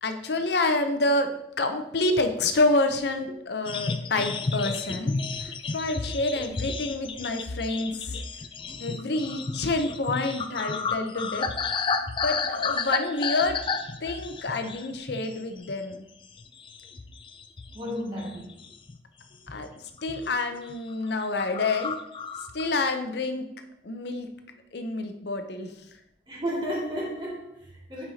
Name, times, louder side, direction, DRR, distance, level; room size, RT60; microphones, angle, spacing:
voice 1, 0.0-8.2 8.8-11.5 12.2-13.6 14.0-16.1 19.4-19.7 20.0-21.9 22.5-23.5 23.8-24.3 24.7-25.7, left 2 dB, 65° left, 7 dB, 0.7 m, -28 dB
sound 1, 3.6-15.4 15.7-15.9 16.4-17.9 18.2-19.0 19.5-19.7 20.0-20.4 20.7-20.8 21.0-21.1 21.4-22.8, left 4 dB, 30° left, 0.4 m, -32 dB
voice 2, 17.7-18.5 26.3-28.0, equal, 25° right, -5 dB, 2.2 m, -33 dB
8.7 x 5.4 x 2.8 m, 0.83 s
head